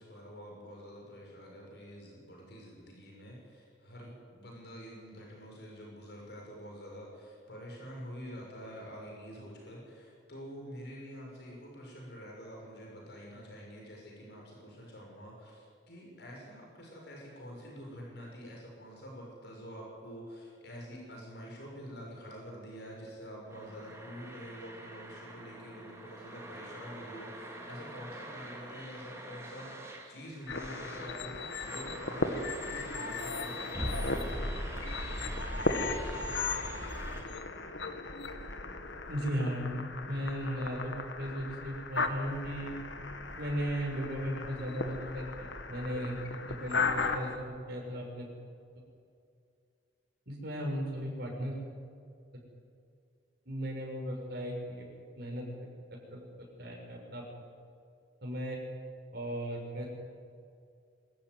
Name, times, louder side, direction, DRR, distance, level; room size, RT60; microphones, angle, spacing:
voice 1, 0.0-34.6, equal, 65° left, -1 dB, 6.4 m, -47 dB
sound 1, 23.5-37.2, equal, 15° right, 3.2 m, -42 dB
sound 2, 30.5-47.4, left 3 dB, 80° left, 1.9 m, -37 dB
voice 2, 39.1-39.8 40.1-42.7 43.4-46.2 46.5-48.3 50.3-51.6 53.4-54.9 55.2-57.2 58.2-58.6 59.1-59.9, equal, 60° right, -1 dB, 6.8 m, -36 dB
25.0 x 14.5 x 9.8 m, 2.3 s
head